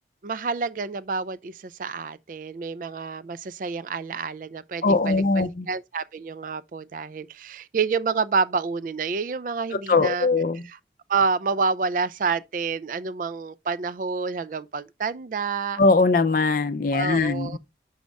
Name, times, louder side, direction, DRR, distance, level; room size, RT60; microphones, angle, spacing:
voice 1, 0.2-10.3 10.6-10.8 11.1-15.8 16.9-17.6, right 5 dB, 50° right, 0.3 m, -28 dB
voice 2, 4.8-5.7 9.9-10.6 15.8-17.6, left 3 dB, 50° left, 0.5 m, -21 dB
6.3 x 5.2 x 3.4 m
head